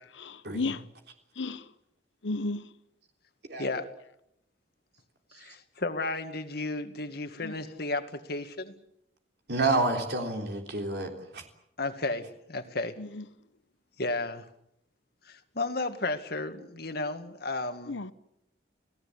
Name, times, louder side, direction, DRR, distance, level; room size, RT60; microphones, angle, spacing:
voice 1, 0.1-0.8 1.4-1.6 2.2-2.7 7.4-7.6 13.0-13.3 17.9-18.1, left 3 dB, 80° left, 1.0 m, -33 dB
voice 2, 5.4-8.7 11.8-13.0 14.0-14.4 15.3-18.0, left 2 dB, 60° left, 2.2 m, -33 dB
voice 3, 9.5-11.4, right 2 dB, 60° right, 3.5 m, -29 dB
29.0 x 17.5 x 8.6 m
head